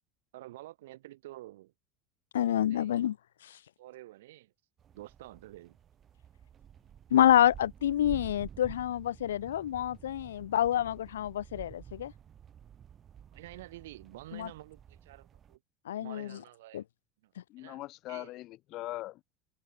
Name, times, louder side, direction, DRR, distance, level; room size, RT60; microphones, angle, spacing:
voice 1, 0.3-1.7 2.7-2.9 3.8-4.5 4.9-5.8 13.3-15.6 16.0-16.8 17.2-17.3 17.6-17.8 18.1-18.3, right 16 dB, 70° right, 2.9 m, -49 dB
voice 2, 2.3-3.2 3.4-3.6 7.1-12.1 14.3-14.5 15.9-16.4 16.7-16.8, left 11 dB, 75° left, 0.6 m, -27 dB
sound 1, 4.8-15.6, right 9 dB, 35° right, 2.2 m, -51 dB
voice 3, 17.5-19.2, left 17 dB, 50° left, 0.9 m, -41 dB
figure-of-eight pair, 75°, 0 cm